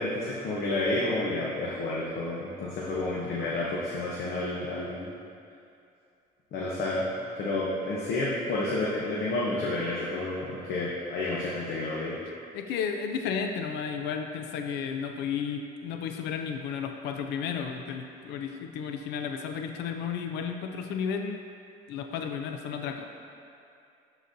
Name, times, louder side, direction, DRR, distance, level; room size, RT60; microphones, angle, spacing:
voice 1, 0.0-5.1 6.5-7.1 7.4-12.2, left 2 dB, 70° left, -5 dB, 0.9 m, -30 dB
voice 2, 12.5-21.4 21.9-23.1, left 6 dB, 85° left, 5 dB, 0.4 m, -33 dB
11.0 x 4.0 x 2.7 m, 2.5 s
cardioid pair, 110°, 17 cm